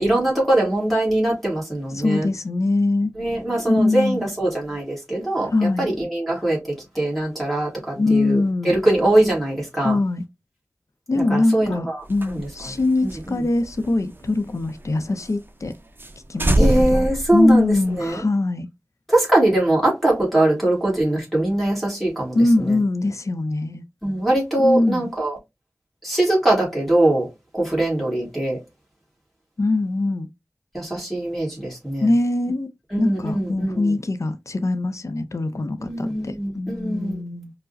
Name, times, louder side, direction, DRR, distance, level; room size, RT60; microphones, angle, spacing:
voice 1, 0.0-2.3 3.2-6.6 6.9-8.4 8.6-10.0 11.3-12.0 12.3-12.5 13.0-13.4 16.6-18.2 19.1-22.8 24.0-25.4 26.0-27.3 27.5-28.6 30.7-32.1 32.9-33.9 35.8-37.2, right 1 dB, ahead, 1.6 m, -22 dB
voice 2, 1.9-3.1 3.7-4.3 5.5-5.9 8.0-8.8 9.8-10.2 11.1-15.7 16.3-18.7 22.3-23.8 24.6-25.1 29.6-30.3 32.0-37.5, left 2 dB, 65° left, 0.5 m, -22 dB
sound 1, 12.0-14.9 15.2-15.3 15.6-15.7 16.0-16.1 16.4-18.1, right 1 dB, 40° right, 0.5 m, -24 dB
4.6 x 2.0 x 2.6 m
wide cardioid pair, 55°, 6 cm